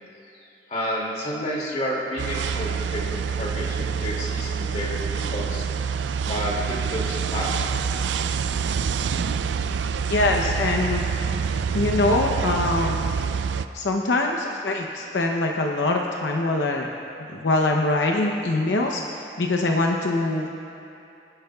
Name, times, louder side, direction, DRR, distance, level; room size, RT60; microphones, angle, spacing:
voice 1, 0.7-5.6 6.2-7.6, equal, 40° left, -4 dB, 2.4 m, -30 dB
sound 1, 2.2-13.7, right 6 dB, 75° right, 0.4 m, -26 dB
voice 2, 10.1-11.0 11.7-13.0 13.7-16.9 17.3-20.5, left 2 dB, 80° left, 1 dB, 0.8 m, -23 dB
25.0 x 10.5 x 2.4 m, 2.9 s
head